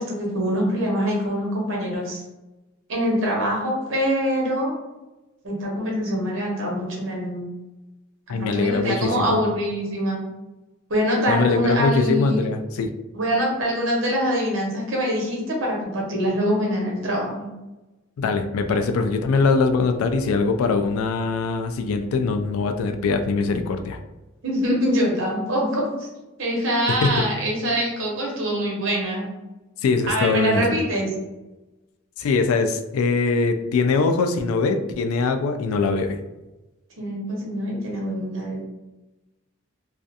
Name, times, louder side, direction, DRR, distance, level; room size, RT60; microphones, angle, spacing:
voice 1, 0.0-2.2 2.9-4.7 5.4-7.5 8.3-10.2 10.9-12.4 13.1-17.5 18.7-18.8 24.4-26.1 26.4-29.3 30.1-31.1 37.0-38.7, equal, 65° right, -2 dB, 0.8 m, -24 dB
voice 2, 8.3-9.4 11.3-12.9 18.2-24.0 27.0-27.3 29.8-30.6 32.2-36.2, left 4 dB, 90° left, 8 dB, 0.3 m, -22 dB
2.4 x 2.3 x 2.6 m, 1.1 s
head